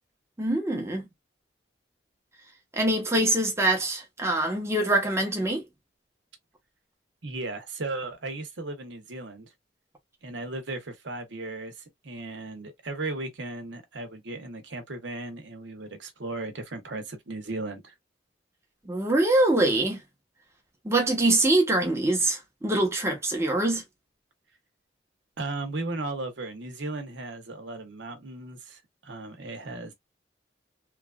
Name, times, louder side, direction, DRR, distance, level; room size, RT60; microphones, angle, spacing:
voice 1, 0.4-1.0 2.7-5.6 18.8-20.0 20.8-23.8, right 2 dB, 15° right, 0.9 m, -24 dB
voice 2, 7.2-9.5 10.2-17.9 25.4-29.9, right 2 dB, 75° right, 0.9 m, -36 dB
3.1 x 2.5 x 2.3 m
head